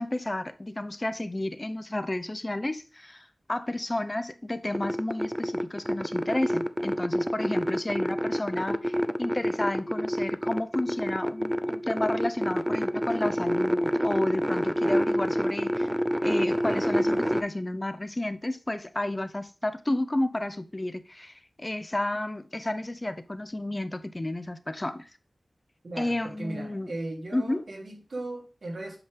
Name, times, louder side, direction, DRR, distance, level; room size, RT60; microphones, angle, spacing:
voice 1, 0.0-15.9 16.2-25.1 26.0-26.9 27.3-27.7, left 1 dB, 25° left, 0.7 m, -32 dB
sound 1, 4.7-17.4, equal, 5° right, 0.6 m, -27 dB
voice 2, 25.8-29.0, right 2 dB, 80° right, 3.1 m, -37 dB
8.1 x 5.4 x 3.7 m
wide cardioid pair, 60°, 0 cm